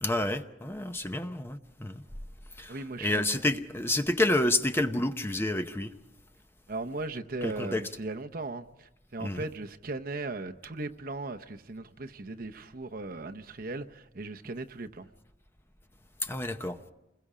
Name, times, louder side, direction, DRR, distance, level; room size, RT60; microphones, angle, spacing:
voice 1, 0.0-2.0 2.6-5.9 7.4-7.8 9.2-9.5 16.2-16.9, left 1 dB, 15° left, 0.8 m, -29 dB
voice 2, 2.7-3.4 6.7-15.1, right 2 dB, 55° right, 0.9 m, -38 dB
28.5 x 21.5 x 5.0 m
head